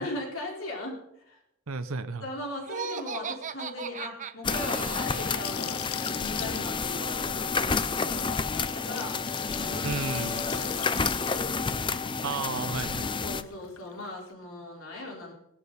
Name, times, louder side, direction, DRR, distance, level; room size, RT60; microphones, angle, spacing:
voice 1, 0.0-1.4 2.2-9.2 9.5-11.6 13.2-15.3, left 1 dB, 70° left, -2 dB, 4.5 m, -39 dB
voice 2, 1.7-2.3 9.8-10.5 12.2-13.1, right 4 dB, 75° right, 10 dB, 0.8 m, -33 dB
Laughter, 2.6-5.5, right 6 dB, 40° right, 0.7 m, -37 dB
sound 1, 4.4-13.4, left 4 dB, 25° left, 0.6 m, -30 dB
Gurgling / Sink (filling or washing) / Bathtub (filling or washing), 4.5-14.3, left 10 dB, 90° left, 0.6 m, -42 dB
20.5 x 12.5 x 4.2 m, 0.81 s
head